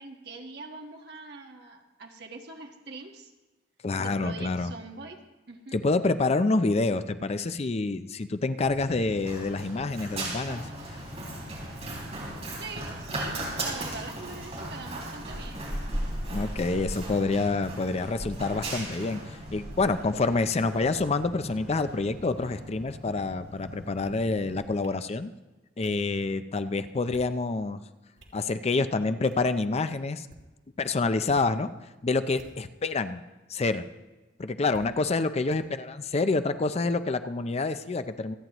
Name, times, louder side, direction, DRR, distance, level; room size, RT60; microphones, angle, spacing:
voice 1, 0.0-3.3 4.0-5.2 5.5-5.8 12.6-15.6, right 3 dB, 60° right, 2 dB, 1.5 m, -43 dB
voice 2, 3.8-4.7 5.7-10.7 16.3-19.2 19.5-25.3 25.8-27.8 28.3-30.3 30.8-31.7 32.0-33.2 33.5-33.8 34.4-38.3, left 3 dB, 35° left, 11 dB, 0.5 m, -27 dB
Run, 8.6-24.6, right 1 dB, 35° right, 3.8 m, -37 dB
sound 1, 24.8-24.9 25.8-25.9 26.9-27.4 27.9-28.4 29.3-29.5 30.1-30.5 31.2-31.4 32.3-32.8 33.6-33.7 34.7-34.9 35.5-35.6, equal, 80° right, 2.6 m, -52 dB
26.0 x 9.2 x 3.0 m, 1.1 s
head